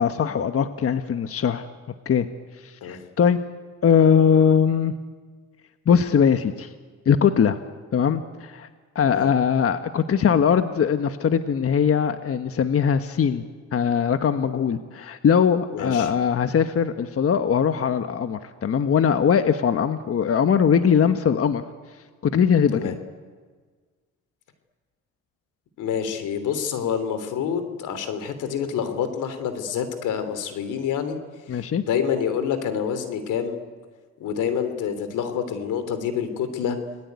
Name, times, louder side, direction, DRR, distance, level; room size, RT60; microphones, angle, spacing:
voice 1, 0.0-1.7 2.0-2.3 2.6-3.4 3.8-4.9 5.9-6.7 7.0-7.6 7.9-8.7 8.9-13.4 13.7-21.6 22.2-23.0 31.5-31.8, left 7 dB, 50° left, 9 dB, 1.3 m, -21 dB
voice 2, 15.7-16.1 22.7-23.0 25.8-31.2 31.5-33.6 34.2-36.8, left 7 dB, 85° left, 10 dB, 3.3 m, -27 dB
29.5 x 21.0 x 9.5 m, 1.5 s
cardioid pair, 90°, 30 cm